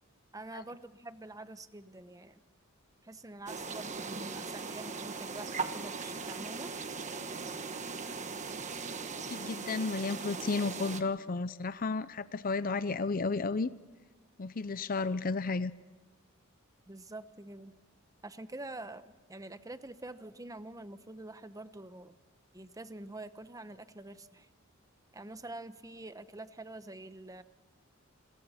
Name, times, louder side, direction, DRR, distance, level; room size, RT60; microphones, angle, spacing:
voice 1, 0.3-2.4 3.0-6.7 16.9-17.7 18.2-22.2 22.5-24.5 25.1-27.4, right 2 dB, 15° right, 12 dB, 0.9 m, -46 dB
sound 1, 3.5-11.0, right 4 dB, 35° right, 1.4 m, -39 dB
voice 2, 9.3-13.7 14.4-15.7, left 4 dB, 45° left, 14 dB, 0.6 m, -33 dB
28.5 x 22.0 x 4.3 m, 1.3 s
head